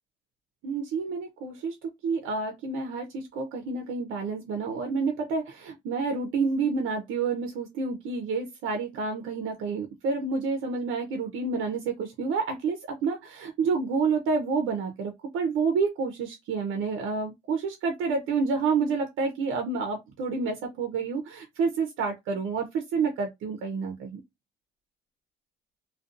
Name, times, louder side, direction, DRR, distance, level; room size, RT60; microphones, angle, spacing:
voice 1, 0.6-24.2, right 4 dB, 85° right, 0.5 m, -29 dB
2.4 x 2.2 x 2.5 m
cardioid pair, 90°, 20 cm